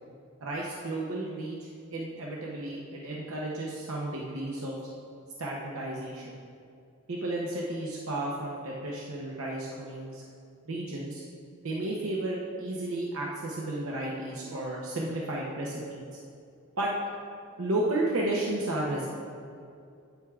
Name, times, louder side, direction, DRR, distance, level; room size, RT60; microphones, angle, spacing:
voice 1, 0.4-4.8 5.4-6.4 7.1-10.2 10.7-11.2 11.6-16.1 16.8-16.9 17.6-19.1, right 1 dB, 85° right, -3 dB, 0.8 m, -33 dB
8.7 x 7.9 x 2.4 m, 2.4 s
head